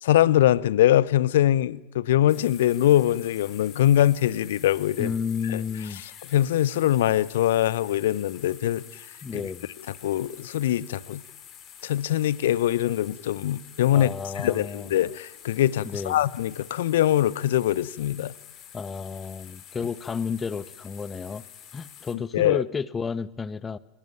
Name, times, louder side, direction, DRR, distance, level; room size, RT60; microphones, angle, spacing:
voice 1, 0.0-5.1 5.5-5.6 6.3-9.0 9.3-9.4 10.0-11.2 11.8-14.1 14.4-18.3 22.3-22.6, left 12 dB, 55° left, 0.8 m, -22 dB
sound 1, 2.3-22.2, left 9 dB, 35° left, 3.3 m, -48 dB
voice 2, 5.0-6.0 9.2-9.7 13.9-14.9 15.8-16.2 18.7-21.4 21.7-23.8, left 6 dB, 15° left, 0.9 m, -31 dB
28.5 x 17.5 x 9.0 m
figure-of-eight pair, 90°, 0 cm